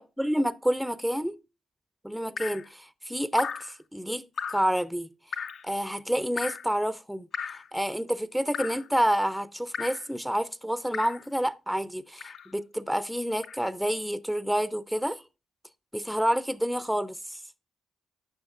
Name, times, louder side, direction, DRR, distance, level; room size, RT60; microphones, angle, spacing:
voice 1, 0.0-1.4 2.0-5.1 5.6-15.2 15.9-17.4, equal, ahead, 0.4 m, -29 dB
Drip, 2.4-2.7 3.4-3.7 4.4-4.7 5.3-5.6 6.4-6.7 7.3-7.7 8.5-8.9 9.7-10.1 10.9-11.3 12.2-12.5 13.4-13.6, left 6 dB, 60° left, 0.4 m, -35 dB
9.7 x 5.8 x 2.4 m
supercardioid pair, 55°, 0 cm